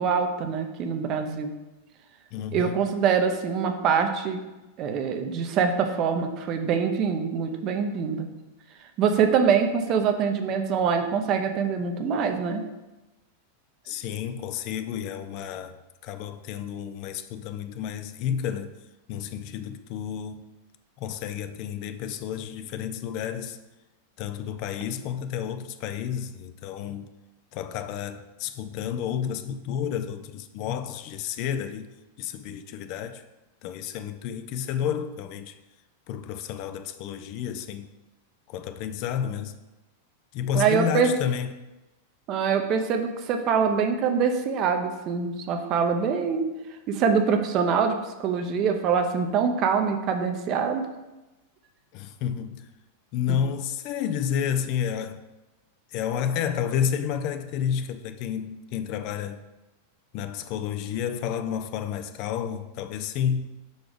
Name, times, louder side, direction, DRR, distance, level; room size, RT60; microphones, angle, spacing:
voice 1, 0.0-1.5 2.5-4.4 4.8-8.3 9.0-12.6 40.5-41.1 42.3-46.5 46.9-50.9 53.3-53.4, right 6 dB, 40° right, 0.7 m, -24 dB
voice 2, 2.3-2.8 13.9-18.8 19.1-20.5 21.0-23.6 24.2-27.1 27.5-33.2 33.6-35.5 36.1-37.9 38.5-39.5 40.3-41.5 51.9-52.7 53.1-55.2 55.9-59.4 60.1-63.5, left 8 dB, 50° left, 0.4 m, -31 dB
4.7 x 4.0 x 5.0 m
hypercardioid pair, 120°, 0 cm